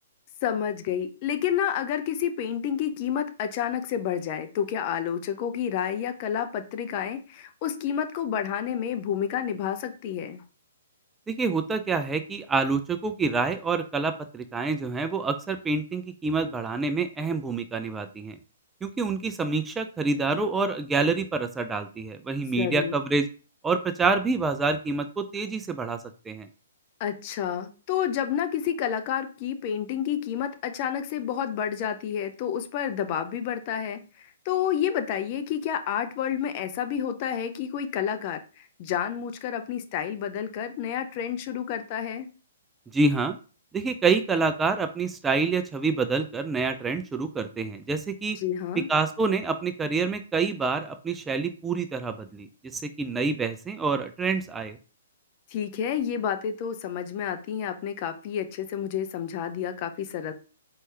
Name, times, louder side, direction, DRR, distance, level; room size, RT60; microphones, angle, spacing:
voice 1, 0.4-10.4 22.6-23.0 27.0-42.3 48.3-48.9 55.5-60.3, left 9 dB, 40° left, 8 dB, 0.6 m, -29 dB
voice 2, 11.3-18.4 18.8-23.3 23.6-26.0 26.3-26.5 42.9-43.4 43.7-48.4 48.9-52.5 52.7-54.8, right 4 dB, 10° right, 8 dB, 0.4 m, -27 dB
4.6 x 2.9 x 3.3 m, 0.34 s
hypercardioid pair, 130°, 0 cm